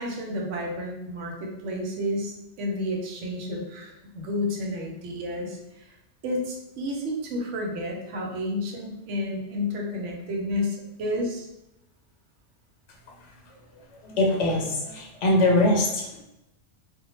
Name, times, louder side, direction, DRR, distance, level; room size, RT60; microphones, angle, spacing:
voice 1, 0.0-5.9 6.2-11.5, left 1 dB, 85° right, 0 dB, 0.9 m, -31 dB
voice 2, 14.1-16.0, left 2 dB, 85° left, 0 dB, 0.9 m, -22 dB
2.1 x 2.1 x 3.0 m, 0.89 s
omnidirectional pair, 1.2 m